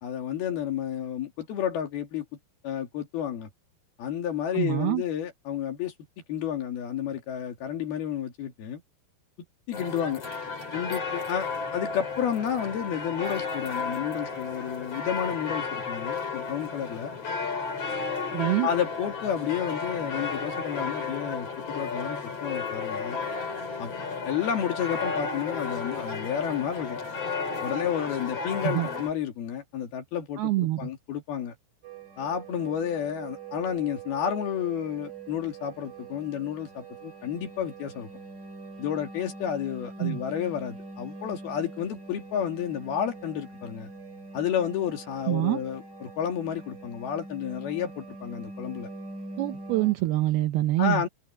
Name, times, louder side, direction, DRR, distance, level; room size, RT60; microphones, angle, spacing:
voice 1, 0.0-2.3 2.6-3.5 4.0-5.9 6.3-8.8 9.7-10.2 10.7-17.1 18.6-23.2 23.8-23.9 24.3-27.0 27.6-31.5 32.2-38.1 38.8-43.9 44.3-48.9 50.8-51.1, left 9 dB, 60° left, 4.0 m, -31 dB
voice 2, 4.5-5.0 18.3-18.7 28.6-28.9 30.4-30.9 40.0-40.2 45.3-45.6 49.4-51.0, right 16 dB, 75° right, 2.4 m, -25 dB
sound 1, 9.7-29.1, left 4 dB, 35° left, 4.9 m, -33 dB
sound 2, 31.8-49.9, right 3 dB, 30° right, 2.3 m, -43 dB
omnidirectional pair, 5.3 m